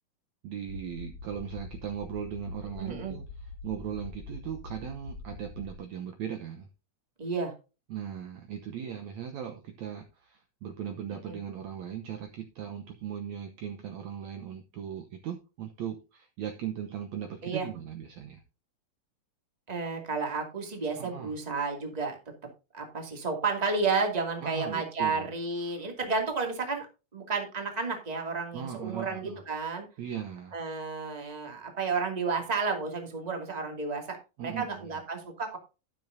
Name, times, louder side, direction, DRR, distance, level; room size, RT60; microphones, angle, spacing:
voice 1, 0.4-3.3 3.6-6.7 7.9-18.4 21.0-21.3 24.4-25.3 28.5-29.4 30.0-30.5 34.4-35.0, right 9 dB, 70° right, 4 dB, 1.9 m, -38 dB
sound 1, 0.7-5.8, left 2 dB, 35° right, 3.0 m, -43 dB
voice 2, 2.8-3.2 7.2-7.5 11.3-11.4 17.4-17.7 19.7-22.2 22.7-26.9 27.1-29.9 30.5-35.6, right 4 dB, 15° right, 2 dB, 1.9 m, -32 dB
12.5 x 9.1 x 2.7 m, 0.31 s
omnidirectional pair, 4.0 m